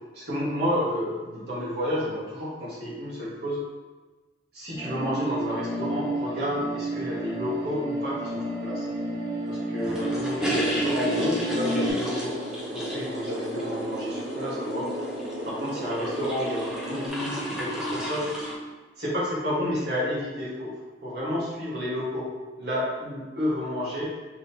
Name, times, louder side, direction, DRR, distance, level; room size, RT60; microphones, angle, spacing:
voice 1, 0.1-3.6 4.5-8.9 9.5-12.3 12.7-14.9 15.4-18.3 19.0-20.7 21.0-22.3 22.6-24.0, equal, 55° right, -6 dB, 1.5 m, -30 dB
sound 1, 4.7-11.9, right 1 dB, 25° right, 1.2 m, -31 dB
sound 2, 9.8-18.5, right 1 dB, 5° right, 0.7 m, -33 dB
sound 3, 10.8-17.1, right 1 dB, 80° right, 0.9 m, -35 dB
5.2 x 3.6 x 2.8 m, 1.3 s
head